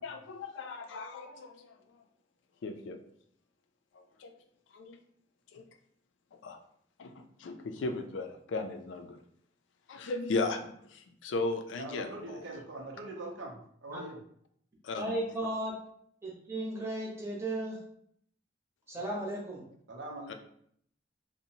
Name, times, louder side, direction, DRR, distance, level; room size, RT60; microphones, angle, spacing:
voice 1, 0.0-1.7 2.6-3.0 4.0-4.3 4.7-5.0 5.5-5.6 6.3-6.6 7.0-7.1 7.4-9.2 9.9-12.4 14.8-15.2 20.3-20.4, left 3 dB, 90° left, 6 dB, 0.3 m, -36 dB
voice 2, 11.8-14.2 18.9-19.1 19.9-20.3, right 2 dB, 80° right, 0 dB, 0.6 m, -42 dB
voice 3, 15.0-15.7 16.2-17.8 18.9-19.6, right 1 dB, 15° right, -3 dB, 0.7 m, -35 dB
2.6 x 2.0 x 2.8 m, 0.67 s
head